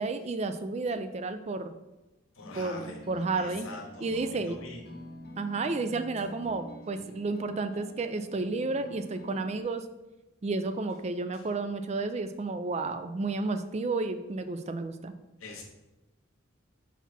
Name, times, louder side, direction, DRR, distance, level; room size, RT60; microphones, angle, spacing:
voice 1, 0.0-1.7 2.5-3.7 4.0-4.6 5.4-9.8 10.4-15.1, right 3 dB, 30° right, 10 dB, 0.3 m, -32 dB
voice 2, 2.3-3.0 3.3-4.8 11.3-11.5 15.4-15.6, left 3 dB, 90° left, 1 dB, 1.3 m, -44 dB
sound 1, 2.4-9.6, left 1 dB, 50° left, 0.8 m, -47 dB
5.9 x 4.0 x 4.2 m, 1.0 s
head